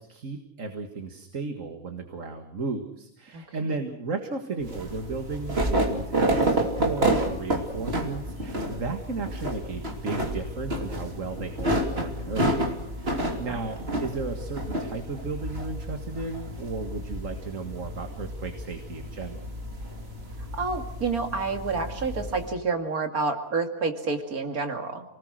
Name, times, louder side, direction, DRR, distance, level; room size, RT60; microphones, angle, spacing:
voice 1, 0.0-19.4, right 4 dB, 60° right, 5 dB, 2.2 m, -35 dB
voice 2, 3.3-3.7 13.1-13.6 20.5-25.0, right 4 dB, 90° right, 5 dB, 2.8 m, -29 dB
sound 1, 4.6-22.5, right 1 dB, 45° right, 3.3 m, -30 dB
29.5 x 19.5 x 6.4 m, 0.76 s
omnidirectional pair, 1.5 m